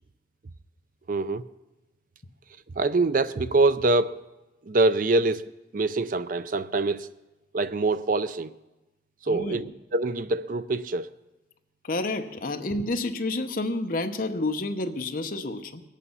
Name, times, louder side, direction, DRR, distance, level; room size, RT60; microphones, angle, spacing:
voice 1, 1.1-1.4 2.8-4.2 4.6-5.4 5.7-7.1 7.5-8.5 9.2-11.1, right 3 dB, 50° right, 0.5 m, -24 dB
voice 2, 9.3-9.7 11.8-15.8, left 2 dB, 50° left, 0.9 m, -29 dB
21.0 x 8.4 x 5.5 m
head